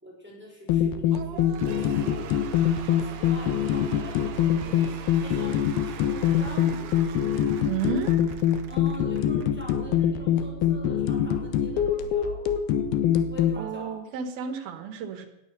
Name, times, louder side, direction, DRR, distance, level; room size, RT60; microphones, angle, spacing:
voice 1, 0.0-2.5 2.9-4.2 4.6-7.2 8.7-13.9, left 2 dB, 5° right, -2 dB, 5.1 m, -44 dB
sound 1, 0.7-13.6, left 9 dB, 85° left, 3.1 m, -24 dB
Cheering / Applause / Crowd, 1.1-9.8, right 8 dB, 60° right, 2.1 m, -43 dB
voice 2, 7.6-8.2 13.6-15.3, right 6 dB, 80° right, 9 dB, 3.4 m, -31 dB
18.5 x 11.5 x 6.8 m, 0.88 s
omnidirectional pair, 4.3 m